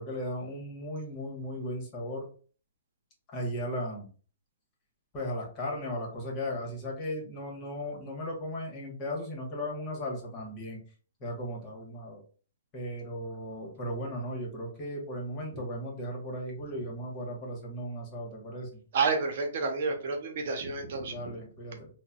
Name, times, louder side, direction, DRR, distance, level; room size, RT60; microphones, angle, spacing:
voice 1, 0.0-2.3 3.3-4.1 5.1-10.8 11.2-12.2 12.7-18.8 21.0-21.9, equal, 30° left, -1 dB, 1.3 m, -36 dB
voice 2, 18.9-21.3, right 4 dB, 60° right, 4 dB, 0.8 m, -30 dB
3.9 x 2.2 x 2.3 m, 0.40 s
hypercardioid pair, 140°, 0 cm